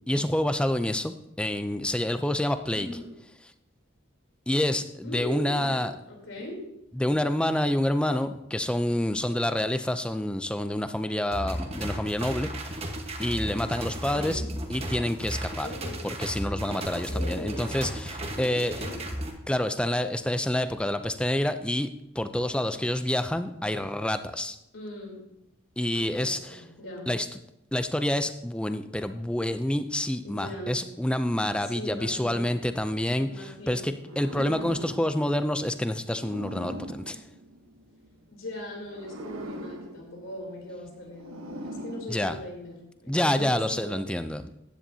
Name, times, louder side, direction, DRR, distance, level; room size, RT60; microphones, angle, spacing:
voice 1, 0.1-2.9 4.5-5.9 7.0-12.9 13.2-14.4 14.7-15.7 16.0-18.8 19.5-21.9 22.2-24.6 25.8-26.6 27.1-27.3 27.7-37.2 42.1-42.4 43.1-44.5, left 1 dB, 5° left, 9 dB, 0.4 m, -28 dB
voice 2, 2.7-3.1 5.0-6.6 14.1-14.5 15.6-16.1 17.1-17.8 18.4-19.0 24.7-25.2 25.9-27.1 30.2-30.8 31.6-32.5 33.2-33.9 34.4-34.7 38.3-44.0, equal, 70° left, 0 dB, 3.4 m, -40 dB
sound 1, 11.3-19.3, right 1 dB, 30° right, 1.3 m, -34 dB
sound 2, 34.0-38.1 38.8-42.8, right 1 dB, 85° right, 1.2 m, -41 dB
15.0 x 10.0 x 2.8 m, 0.85 s
head